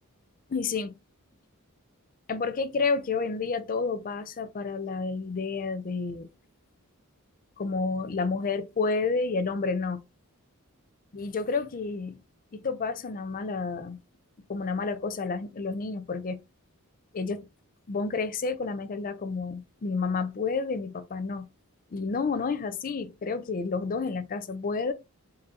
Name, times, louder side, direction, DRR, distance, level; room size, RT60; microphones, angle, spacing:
voice 1, 0.5-0.9 2.3-6.3 7.6-10.0 11.1-12.2 12.5-14.0 14.5-16.4 17.1-17.5 17.9-21.5 21.9-24.9, left 4 dB, 40° left, 0.5 m, -30 dB
3.7 x 2.8 x 3.7 m
head